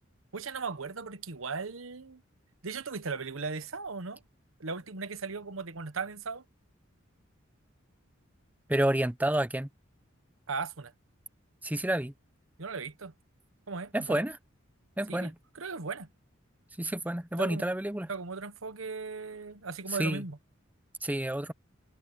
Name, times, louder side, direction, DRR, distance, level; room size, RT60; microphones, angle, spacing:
voice 1, 0.3-2.2 2.6-4.2 4.6-6.4 10.5-10.9 12.6-13.1 13.7-14.2 15.1-16.1 17.4-17.6 18.1-20.4, right 4 dB, 90° right, 1.2 m, -37 dB
voice 2, 8.7-9.7 11.6-12.1 13.9-14.4 15.0-15.3 16.8-18.1 20.0-20.2 21.0-21.5, right 1 dB, 10° right, 0.7 m, -29 dB
head